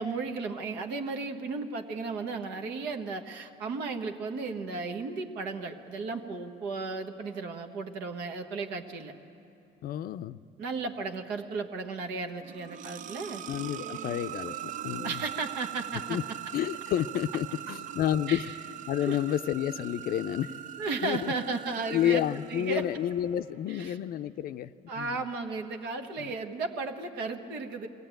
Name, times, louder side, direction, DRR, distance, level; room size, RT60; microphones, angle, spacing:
voice 1, 0.0-9.1 10.6-13.4 15.0-16.2 17.7-17.8 18.3-18.4 19.0-19.2 20.8-22.2 22.5-22.8 23.7-24.0 24.9-27.9, right 4 dB, 85° right, 5 dB, 1.3 m, -34 dB
voice 2, 9.8-10.4 13.5-15.2 16.1-16.2 16.5-18.5 18.9-20.6 21.0-21.3 21.9-24.7 25.0-25.1, left 11 dB, 60° left, 11 dB, 0.4 m, -30 dB
sound 1, 12.4-23.2, right 11 dB, 50° right, 0.4 m, -41 dB
21.5 x 16.5 x 9.1 m, 2.8 s
cardioid pair, 110°, 17 cm